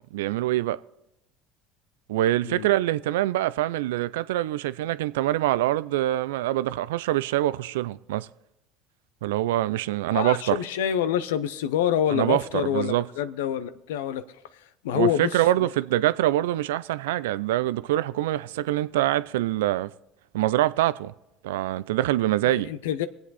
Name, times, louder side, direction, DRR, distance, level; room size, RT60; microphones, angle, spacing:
voice 1, 0.1-0.8 2.1-8.3 9.2-10.6 12.1-13.1 14.9-19.9 20.3-21.1 21.4-22.7, right 14 dB, 85° right, 0.4 m, -25 dB
voice 2, 10.1-14.2 14.8-15.4 22.4-23.1, left 10 dB, 85° left, 0.7 m, -26 dB
23.0 x 8.2 x 4.1 m
hypercardioid pair, 75°, 0 cm